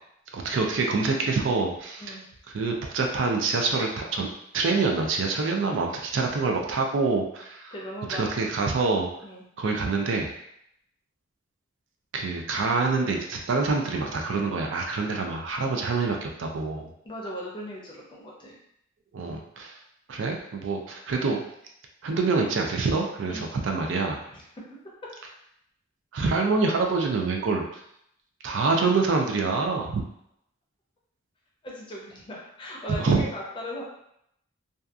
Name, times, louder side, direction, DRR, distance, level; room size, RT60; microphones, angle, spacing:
voice 1, 0.3-2.2 2.5-4.3 4.5-7.7 8.1-9.1 9.6-10.3 12.1-16.9 19.1-19.7 20.1-21.4 22.0-24.2 26.1-27.6 28.4-30.0 32.9-33.2, right 4 dB, 65° right, 2 dB, 0.4 m, -26 dB
voice 2, 7.7-8.3 9.2-9.5 17.0-18.6 23.3-23.5 24.1-24.4 24.7-25.1 31.6-33.8, equal, 25° left, -3 dB, 0.5 m, -38 dB
2.6 x 2.3 x 2.3 m, 0.74 s
head